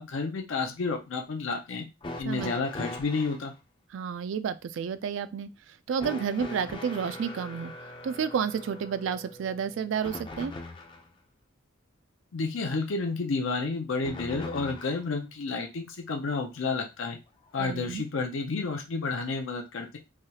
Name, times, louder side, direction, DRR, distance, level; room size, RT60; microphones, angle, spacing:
voice 1, 0.0-1.9 2.2-3.5 12.3-17.2 17.5-20.0, left 4 dB, 80° left, 0.5 m, -31 dB
sound 1, 2.0-3.5 6.0-11.1 14.0-15.1 16.3-16.4 17.5-17.6, left 2 dB, 25° left, 0.4 m, -41 dB
voice 2, 3.9-7.7 8.0-10.5 17.6-18.0, right 7 dB, 70° right, 0.3 m, -31 dB
3.2 x 2.3 x 2.8 m
head